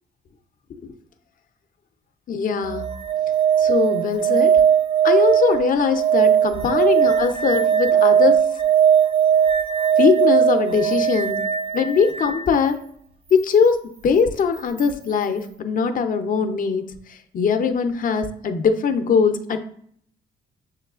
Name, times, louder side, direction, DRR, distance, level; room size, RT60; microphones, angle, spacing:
voice 1, 2.3-2.9 3.6-4.6 5.0-8.5 10.0-11.4 11.7-12.8 13.3-19.6, left 5 dB, 45° left, 7 dB, 0.5 m, -21 dB
sound 1, 2.6-12.5 14.8-14.9, right 8 dB, 30° right, 0.4 m, -19 dB
6.5 x 3.1 x 2.4 m, 0.64 s
cardioid pair, 90°, 20 cm